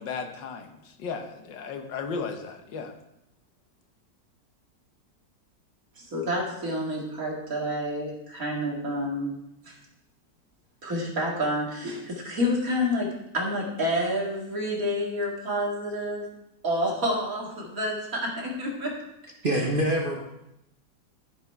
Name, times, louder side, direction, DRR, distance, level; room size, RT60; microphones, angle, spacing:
voice 1, 0.0-3.0, left 5 dB, 80° left, 6 dB, 1.7 m, -35 dB
voice 2, 6.0-9.4 9.7-9.8 10.8-16.3 16.6-19.0 19.5-19.7, equal, 50° right, -2 dB, 2.6 m, -29 dB
voice 3, 19.4-20.2, right 1 dB, 35° right, 0 dB, 1.2 m, -24 dB
14.0 x 6.1 x 4.6 m, 0.85 s
omnidirectional pair, 2.0 m